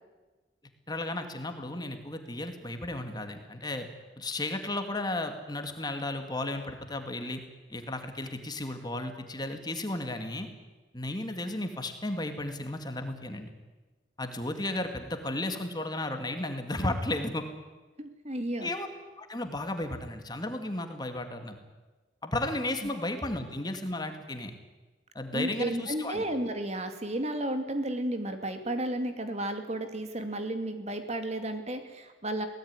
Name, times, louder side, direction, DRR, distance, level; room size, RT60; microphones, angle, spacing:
voice 1, 0.9-3.9 4.2-7.4 7.7-10.5 10.9-13.5 14.2-17.4 18.6-18.9 19.2-21.6 22.2-24.6 25.1-26.2, left 2 dB, 25° left, 6 dB, 2.2 m, -34 dB
voice 2, 18.0-18.7 25.3-32.5, right 1 dB, 35° right, 7 dB, 2.5 m, -33 dB
24.0 x 18.0 x 9.8 m, 1.2 s
head